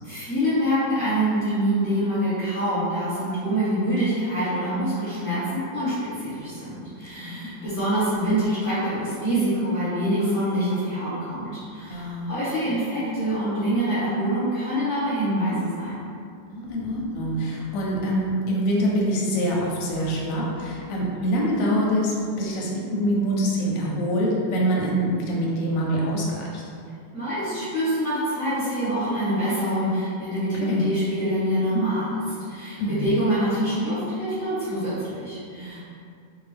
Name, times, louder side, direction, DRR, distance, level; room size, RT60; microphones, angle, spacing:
voice 1, 0.0-16.1 27.1-32.2 32.5-35.8, equal, 10° left, -13 dB, 0.7 m, -25 dB
voice 2, 3.7-4.4 7.2-7.6 11.9-12.3 16.5-26.6 30.6-30.8 32.8-33.2 35.5-35.8, equal, 70° left, -3 dB, 0.8 m, -25 dB
2.8 x 2.2 x 3.3 m, 2.3 s
omnidirectional pair, 1.8 m